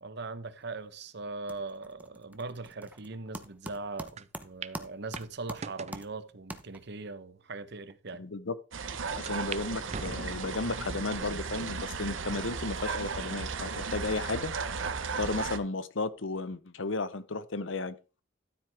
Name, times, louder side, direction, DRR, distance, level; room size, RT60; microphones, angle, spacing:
voice 1, 0.0-8.2, right 3 dB, 65° right, 1.0 m, -40 dB
sound 1, 0.6-1.0 1.3-7.1, right 1 dB, 10° right, 0.9 m, -45 dB
sound 2, 4.2-4.3 4.6-4.8 5.2-6.0 6.7-6.8 7.5-7.6 7.9-8.0 9.3-9.6 9.9-10.7 11.2-11.7 12.2-12.3 13.4-13.9, right 6 dB, 35° right, 0.4 m, -42 dB
voice 2, 8.2-8.5 9.2-14.5 15.2-18.0, left 3 dB, 80° left, 0.9 m, -34 dB
sound 3, 8.7-15.6, right 5 dB, 85° right, 1.0 m, -35 dB
12.5 x 7.7 x 3.5 m
head